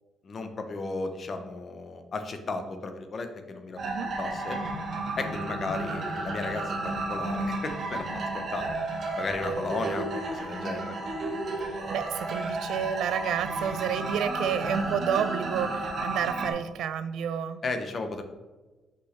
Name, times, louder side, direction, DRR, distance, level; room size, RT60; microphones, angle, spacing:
voice 1, 0.2-3.8 4.2-4.6 5.2-8.7 9.2-11.0 17.6-18.2, left 3 dB, 35° left, 7 dB, 0.7 m, -34 dB
sound 1, 3.8-16.5, right 2 dB, 45° right, 1.1 m, -32 dB
voice 2, 11.9-17.6, right 8 dB, 85° right, 12 dB, 0.4 m, -30 dB
6.1 x 5.7 x 3.1 m, 1.2 s
cardioid pair, 175°, 0 cm